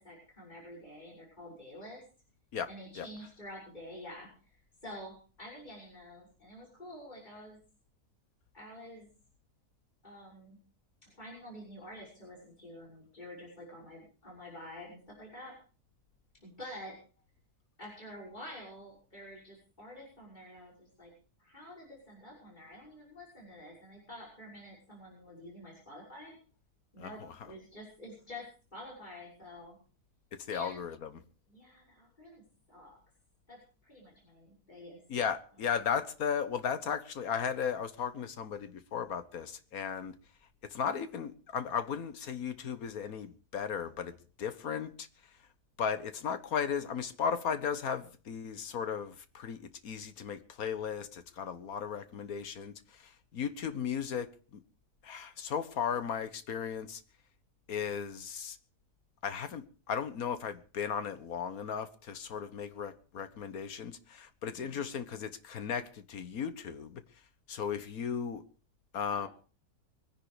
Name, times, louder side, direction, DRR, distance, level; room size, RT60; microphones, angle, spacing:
voice 1, 0.0-2.0 2.7-4.5 4.8-7.6 8.5-9.1 10.0-10.6 11.1-15.5 16.4-16.9 17.8-21.1 21.4-26.3 26.9-29.8 30.5-30.8 31.5-32.4 32.7-33.0 33.5-35.0 69.1-69.3, left 1 dB, 30° left, 6.3 m, -48 dB
voice 2, 27.0-27.5 30.5-31.2 35.1-40.1 40.6-44.1 44.4-45.1 45.8-54.3 54.5-54.6 55.0-57.0 57.7-58.6 59.2-67.0 67.5-68.4 68.9-69.3, left 7 dB, 70° left, 1.7 m, -36 dB
23.0 x 10.5 x 5.0 m
omnidirectional pair, 1.6 m